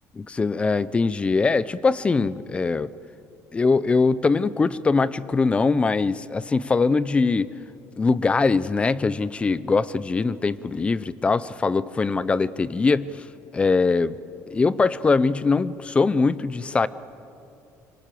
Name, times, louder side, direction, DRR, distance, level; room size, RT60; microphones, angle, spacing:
voice 1, 0.1-2.9 3.5-7.5 8.0-13.1 13.5-14.2 14.5-16.9, left 4 dB, 15° left, 17 dB, 0.6 m, -22 dB
25.5 x 25.0 x 7.7 m, 2.7 s
cardioid pair, 150°, 7 cm